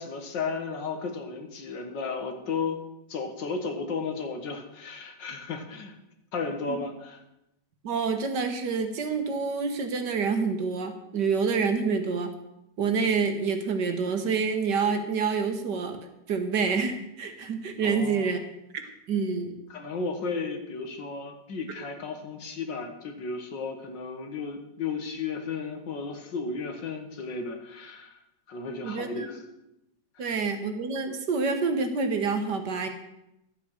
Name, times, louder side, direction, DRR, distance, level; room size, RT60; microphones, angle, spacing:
voice 1, 0.0-2.8 3.1-5.9 6.3-7.2 17.8-18.3 19.7-28.2 28.5-29.4 30.2-30.3, left 4 dB, 70° left, 5 dB, 2.2 m, -34 dB
voice 2, 7.8-12.3 12.8-16.0 16.3-18.4 19.1-19.5 28.8-29.3 30.2-32.9, right 5 dB, 65° right, 7 dB, 1.8 m, -27 dB
12.0 x 8.5 x 6.5 m, 0.87 s
omnidirectional pair, 2.1 m